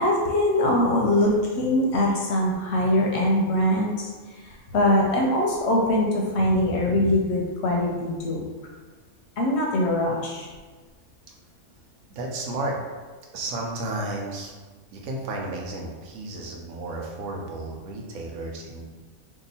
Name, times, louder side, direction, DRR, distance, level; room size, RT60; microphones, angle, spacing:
voice 1, 0.0-4.1 4.4-8.4 9.4-10.5, left 1 dB, 65° left, -1 dB, 0.8 m, -22 dB
voice 2, 12.1-12.8 13.3-14.5 14.9-18.8, right 2 dB, 85° right, 0 dB, 1.0 m, -32 dB
2.8 x 2.4 x 3.9 m, 1.4 s
omnidirectional pair, 1.4 m